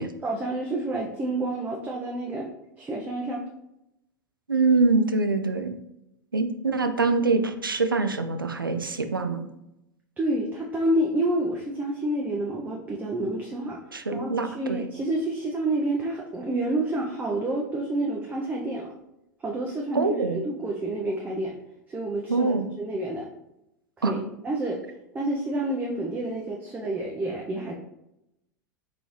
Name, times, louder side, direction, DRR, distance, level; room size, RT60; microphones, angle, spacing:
voice 1, 0.0-2.5 2.8-3.4 10.2-13.8 14.1-18.9 19.4-21.5 21.9-23.3 24.0-24.8 25.1-27.7, right 1 dB, 15° right, -2 dB, 0.5 m, -29 dB
voice 2, 4.5-5.7 6.3-9.5 13.9-14.8 19.9-20.4 22.3-22.7 24.0-24.1, right 3 dB, 85° right, 8 dB, 0.4 m, -24 dB
3.8 x 3.8 x 3.0 m, 0.87 s
figure-of-eight pair, 90°, 11 cm